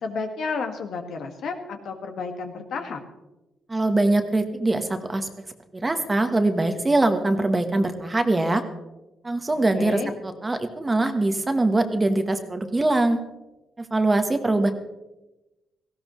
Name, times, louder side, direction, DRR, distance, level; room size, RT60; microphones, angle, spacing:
voice 1, 0.0-3.0 9.5-10.1, left 4 dB, 65° left, 5 dB, 1.7 m, -32 dB
voice 2, 3.7-5.3 5.7-8.6 9.2-13.2 13.8-14.7, right 2 dB, 20° right, 7 dB, 1.2 m, -22 dB
18.0 x 15.5 x 3.1 m, 1.0 s
cardioid pair, 125°, 0 cm